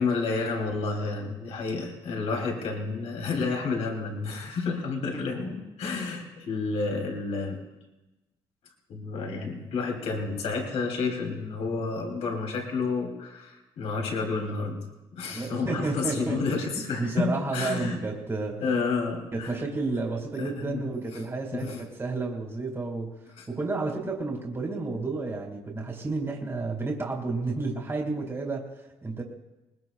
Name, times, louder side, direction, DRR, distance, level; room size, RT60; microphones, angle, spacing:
voice 1, 0.0-7.6 8.9-14.8 15.1-18.0 18.6-19.5 20.4-20.9 21.5-21.8 23.4-23.5, left 4 dB, 70° left, 1 dB, 3.1 m, -30 dB
voice 2, 15.3-16.4 17.0-18.6 19.3-23.2 23.5-29.2, right 3 dB, 25° right, 0 dB, 2.3 m, -31 dB
21.0 x 20.0 x 2.4 m, 1.0 s
cardioid pair, 90°, 11 cm